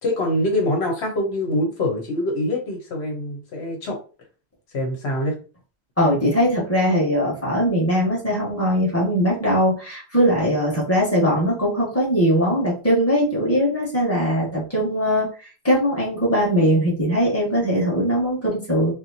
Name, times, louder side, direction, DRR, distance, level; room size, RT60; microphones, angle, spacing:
voice 1, 0.0-4.0 4.7-5.3, left 1 dB, 80° left, 2 dB, 1.2 m, -24 dB
voice 2, 6.0-15.3 15.6-18.9, equal, 15° left, -4 dB, 1.5 m, -20 dB
4.3 x 2.2 x 2.7 m, 0.34 s
omnidirectional pair, 1.1 m